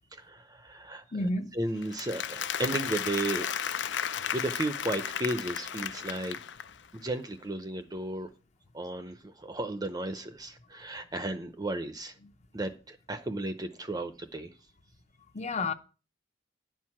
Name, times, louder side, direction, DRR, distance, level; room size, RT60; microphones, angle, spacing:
voice 1, 0.1-1.0 1.6-3.5 4.3-6.4 6.9-8.3 8.7-12.1 12.5-14.5, right 2 dB, 20° right, 0.7 m, -34 dB
voice 2, 1.1-1.5 12.2-12.3 15.3-15.7, left 2 dB, 35° left, 0.8 m, -30 dB
Applause, 1.8-6.9, left 8 dB, 70° left, 0.6 m, -34 dB
10.5 x 4.7 x 7.3 m
head